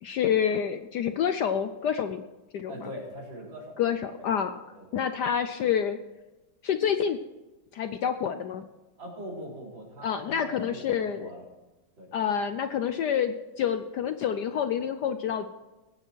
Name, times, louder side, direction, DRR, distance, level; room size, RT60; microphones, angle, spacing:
voice 1, 0.0-2.2 2.5-2.9 3.8-4.5 4.9-6.0 6.6-7.2 7.7-8.6 10.0-11.3 12.1-15.5, left 8 dB, 70° left, 9 dB, 1.1 m, -28 dB
voice 2, 2.7-3.8 4.2-4.3 4.7-5.2 9.0-11.4 12.0-12.1, equal, 60° right, -4 dB, 5.1 m, -41 dB
20.5 x 9.0 x 4.5 m, 1.1 s
omnidirectional pair, 2.3 m